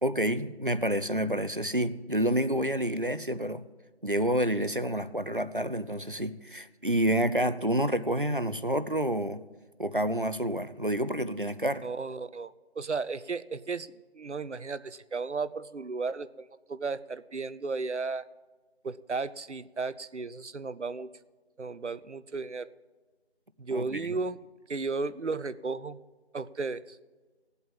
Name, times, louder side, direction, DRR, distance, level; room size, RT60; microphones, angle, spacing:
voice 1, 0.0-3.6 4.0-9.4 9.8-11.9 23.7-24.1, right 1 dB, 50° right, 0.6 m, -28 dB
voice 2, 11.8-18.3 18.8-21.1 21.6-22.7 23.6-24.4 24.7-26.0 26.3-27.0, right 4 dB, 85° right, 0.7 m, -34 dB
17.0 x 8.0 x 7.5 m
figure-of-eight pair, 180°, 34 cm